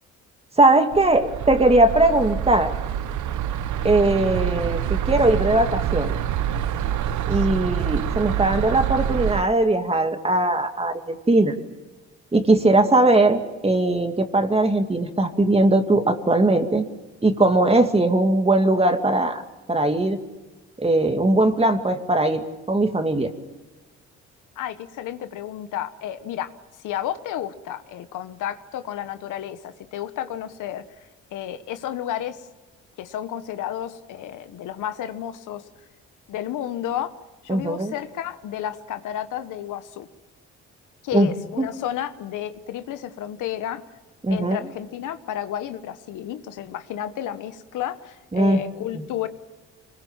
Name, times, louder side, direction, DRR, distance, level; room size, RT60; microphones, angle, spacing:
voice 1, 0.6-2.7 3.8-6.2 7.3-11.5 12.3-16.8 17.2-19.4 19.7-20.2 20.8-23.3 37.5-37.9 41.1-41.7 44.2-44.6 48.3-48.6 48.9-49.0, right 2 dB, 20° right, 6 dB, 2.4 m, -20 dB
sound 1, 0.9-9.4, right 9 dB, 75° right, 1.0 m, -26 dB
voice 2, 7.3-7.6 24.6-26.5 26.8-30.8 31.3-32.5 33.0-35.6 36.3-37.1 37.4-40.1 41.0-43.8 44.3-49.3, left 11 dB, 85° left, 10 dB, 1.3 m, -31 dB
25.5 x 21.0 x 7.4 m, 1.2 s
cardioid pair, 90°, 30 cm